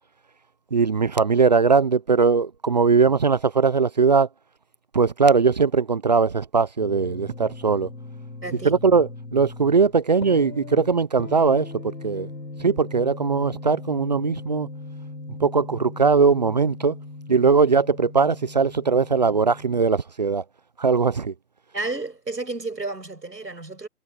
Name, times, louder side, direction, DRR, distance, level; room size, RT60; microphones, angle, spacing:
voice 1, 0.7-4.3 4.9-7.9 8.6-12.3 12.6-14.7 15.4-17.0 17.3-20.4 20.8-21.3, right 5 dB, 25° right, 0.9 m, -20 dB
sound 1, 6.8-19.9, left 2 dB, 80° left, 6.6 m, -39 dB
voice 2, 8.4-8.8 21.7-23.9, right 3 dB, 85° right, 7.3 m, -31 dB
figure-of-eight pair, 150°, 49 cm